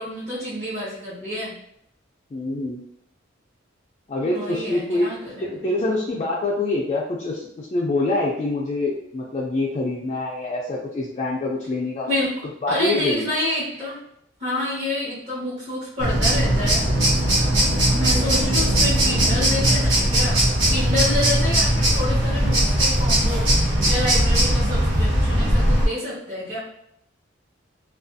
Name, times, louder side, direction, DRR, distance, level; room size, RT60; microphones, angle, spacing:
voice 1, 0.0-1.5 4.2-5.7 12.1-12.3 12.7-14.0 14.4-17.0 17.9-23.5 23.8-26.6, left 1 dB, 35° right, -12 dB, 1.0 m, -28 dB
voice 2, 2.3-2.8 4.1-5.1 5.4-12.1 12.6-13.3, left 2 dB, 30° left, -3 dB, 0.3 m, -25 dB
sound 1, 16.0-25.9, right 1 dB, 75° right, 1.0 m, -19 dB
2.4 x 2.3 x 2.5 m, 0.76 s
head